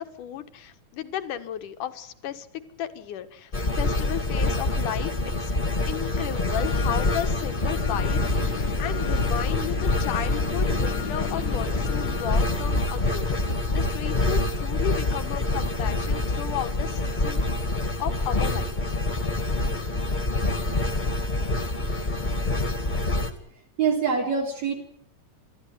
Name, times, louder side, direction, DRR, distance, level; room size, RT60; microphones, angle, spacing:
voice 1, 0.0-2.5 2.8-5.5 5.8-17.4 18.0-18.8, left 10 dB, 85° left, 9 dB, 3.0 m, -34 dB
sound 1, 3.5-23.3, left 2 dB, 20° left, 1.7 m, -26 dB
sound 2, 6.5-13.5, left 8 dB, 65° left, 1.1 m, -35 dB
voice 2, 23.8-24.8, right 6 dB, 60° right, 0 dB, 4.5 m, -24 dB
30.0 x 13.5 x 9.5 m, 0.68 s
omnidirectional pair, 3.5 m